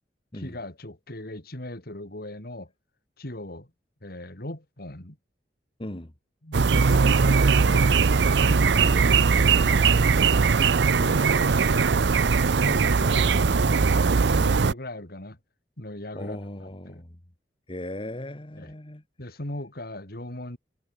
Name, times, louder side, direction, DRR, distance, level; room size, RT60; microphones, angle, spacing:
voice 1, 0.3-2.7 3.2-3.7 4.0-5.2 6.4-7.9 8.4-10.1 10.9-11.9 12.6-15.4 15.8-17.0 18.6-18.7 19.2-20.6, left 1 dB, 60° left, 3.7 m, -39 dB
voice 2, 5.8-6.1 8.5-8.7 16.1-17.2 17.7-19.0, left 1 dB, 30° left, 1.8 m, -37 dB
sound 1, 6.5-14.7, right 5 dB, 80° right, 0.6 m, -20 dB
head